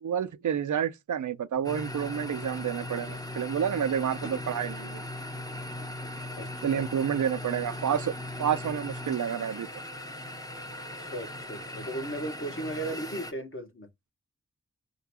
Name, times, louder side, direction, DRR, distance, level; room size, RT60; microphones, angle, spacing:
voice 1, 0.0-5.0 6.6-8.1 8.4-9.7, right 8 dB, 75° right, 0.5 m, -29 dB
sound 1, 1.6-13.3, left 1 dB, 10° left, 0.7 m, -38 dB
voice 2, 6.4-6.8 11.0-13.9, right 1 dB, 40° left, 1.1 m, -36 dB
3.8 x 2.2 x 2.8 m
wide cardioid pair, 50°, 31 cm